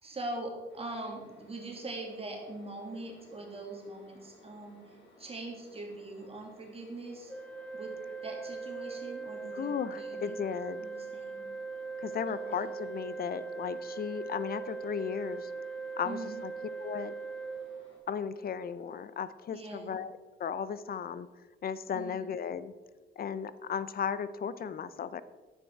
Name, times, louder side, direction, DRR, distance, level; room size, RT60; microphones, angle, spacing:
voice 1, 0.0-7.3 7.7-7.9 8.2-10.4 10.8-11.5 12.3-12.7 16.0-16.4 19.5-19.9 21.9-22.3, right 2 dB, 30° right, 0 dB, 2.5 m, -42 dB
sound 1, 0.7-18.0, left 1 dB, 70° left, 3.4 m, -60 dB
Organ, 7.3-18.3, right 4 dB, 5° left, 0.8 m, -40 dB
voice 2, 9.5-10.9 12.0-15.5 16.0-16.5 16.8-17.1 18.1-20.1 20.4-21.3 21.6-22.7 23.2-25.2, left 7 dB, 50° left, 15 dB, 0.7 m, -35 dB
11.0 x 9.0 x 4.6 m, 1.3 s
cardioid pair, 90°, 20 cm